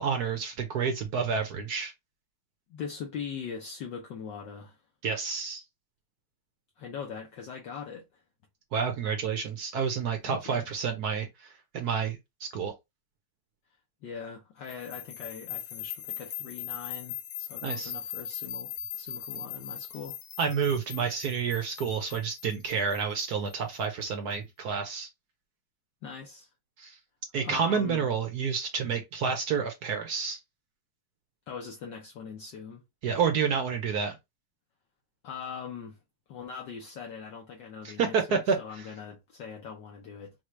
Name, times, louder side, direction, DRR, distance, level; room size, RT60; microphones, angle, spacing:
voice 1, 0.0-1.9 5.0-5.6 8.7-12.7 17.6-17.9 20.4-25.1 26.8-27.0 27.3-30.4 33.0-34.2 37.8-38.6, right 6 dB, 60° right, 1.1 m, -29 dB
voice 2, 2.7-4.8 6.8-8.2 10.2-10.7 14.0-20.2 26.0-26.5 27.4-28.1 31.5-32.8 35.2-36.0 36.3-40.3, left 6 dB, 65° left, 1.4 m, -41 dB
sound 1, 14.7-23.7, left 10 dB, 85° left, 1.8 m, -40 dB
5.9 x 2.4 x 3.1 m
omnidirectional pair, 2.4 m